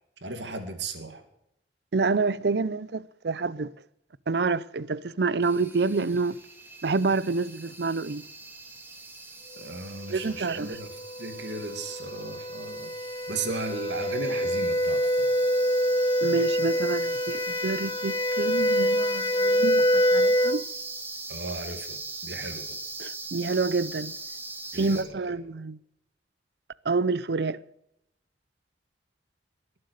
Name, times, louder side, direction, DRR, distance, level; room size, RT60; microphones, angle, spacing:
voice 1, 0.2-1.2 9.6-10.9 11.2-12.9 13.3-15.4 21.3-22.8 24.7-25.4, right 3 dB, 85° right, 2.3 m, -36 dB
voice 2, 1.9-3.7 4.3-6.4 6.8-8.2 10.1-10.7 16.2-20.6 23.0-24.1 24.7-25.8 26.8-27.6, right 4 dB, 65° right, 0.6 m, -28 dB
sound 1, 5.4-25.0, right 3 dB, 10° right, 1.9 m, -41 dB
sound 2, 10.7-20.7, equal, 25° left, 0.5 m, -26 dB
21.5 x 7.8 x 6.6 m
head